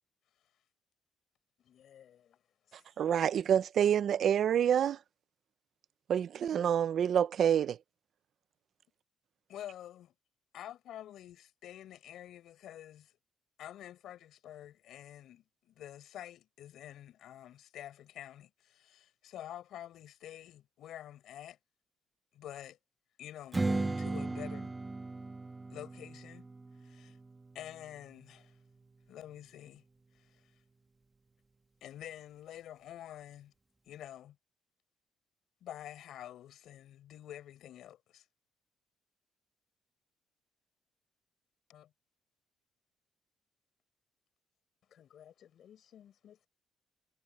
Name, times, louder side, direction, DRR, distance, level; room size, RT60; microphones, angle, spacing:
voice 1, 1.6-2.4 2.7-2.8 44.9-46.5, left 9 dB, 60° left, 5.8 m, -59 dB
voice 2, 3.0-5.0 6.1-7.8, right 9 dB, 55° right, 0.5 m, -27 dB
voice 3, 9.5-10.1 10.5-13.1 13.6-21.6 22.3-22.8 23.2-24.7 25.7-26.5 26.8-27.2 27.5-28.6 29.1-29.8 30.2-30.4 31.8-33.5 33.9-34.4 35.6-38.2 41.7-41.9, left 12 dB, 75° left, 5.6 m, -48 dB
Strum, 23.5-28.8, right 3 dB, 15° right, 1.2 m, -37 dB
cardioid pair, 155°, 0 cm